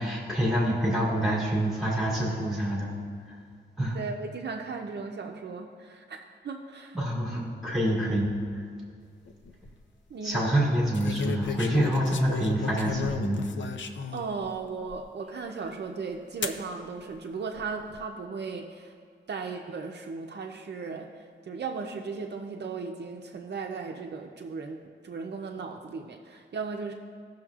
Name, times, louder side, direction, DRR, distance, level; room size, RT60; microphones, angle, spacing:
voice 1, 0.0-2.9 3.3-3.4 3.8-4.0 6.9-8.4 10.2-13.4, right 1 dB, ahead, -6 dB, 2.4 m, -26 dB
voice 2, 3.9-6.2 6.4-7.0 10.1-10.6 14.1-18.9 19.3-21.1 21.4-26.9, right 4 dB, 65° right, 2 dB, 0.6 m, -36 dB
sound 1, 9.3-9.7 10.9-14.3 14.9-15.0 16.4-16.6 17.5-18.0, left 5 dB, 90° left, 0.5 m, -34 dB
16.5 x 6.3 x 2.4 m, 2.1 s
wide cardioid pair, 155°, 19 cm